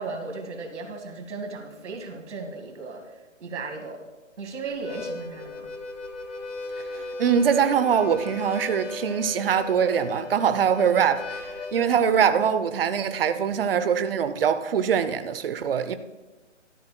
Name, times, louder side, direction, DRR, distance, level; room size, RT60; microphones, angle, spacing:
voice 1, 0.0-4.0 4.4-5.7, right 3 dB, 65° right, 2.1 m, -36 dB
Harmonica, 4.7-12.1, left 3 dB, 70° left, 2.2 m, -37 dB
voice 2, 6.8-15.9, right 7 dB, 50° right, 0.7 m, -23 dB
16.5 x 13.0 x 2.3 m
hypercardioid pair, 155°, 38 cm